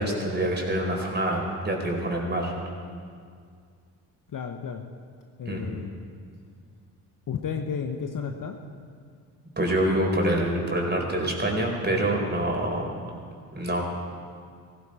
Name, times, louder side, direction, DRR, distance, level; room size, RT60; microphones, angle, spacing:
voice 1, 0.0-2.5 5.5-5.7 9.6-12.9 13.5-13.9, right 1 dB, 20° right, 0 dB, 4.3 m, -26 dB
voice 2, 4.3-4.9 5.4-6.0 7.3-8.6, left 6 dB, 45° left, 4 dB, 1.2 m, -32 dB
16.5 x 16.0 x 4.3 m, 2.1 s
hypercardioid pair, 50°, 46 cm